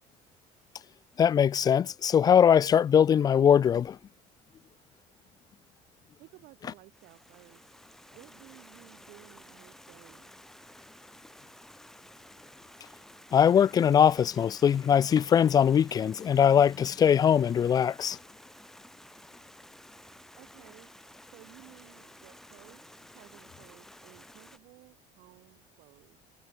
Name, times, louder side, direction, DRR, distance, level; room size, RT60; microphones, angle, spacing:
voice 1, 1.2-4.0 13.3-18.2, left 8 dB, 25° left, 0.5 m, -21 dB
voice 2, 6.2-7.7 8.1-10.3 20.3-26.2, right 21 dB, 75° right, 5.3 m, -56 dB
sound 1, 6.9-24.6, left 1 dB, 5° left, 6.9 m, -53 dB
cardioid pair, 160°, 14 cm